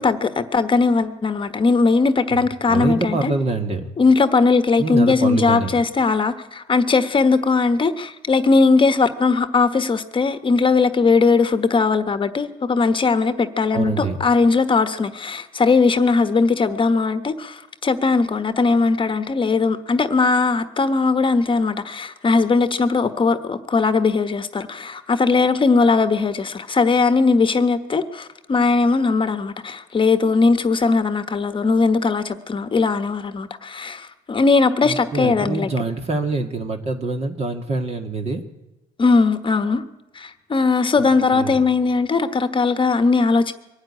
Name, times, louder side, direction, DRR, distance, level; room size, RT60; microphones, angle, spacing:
voice 1, 0.0-3.3 4.0-35.7 39.0-39.8 40.1-43.5, left 4 dB, 30° left, 1.2 m, -19 dB
voice 2, 2.3-3.9 4.8-5.8 13.7-14.2 34.8-38.4 41.0-41.7, right 3 dB, 40° right, 1.9 m, -25 dB
23.5 x 13.0 x 9.9 m
cardioid pair, 110°, 17 cm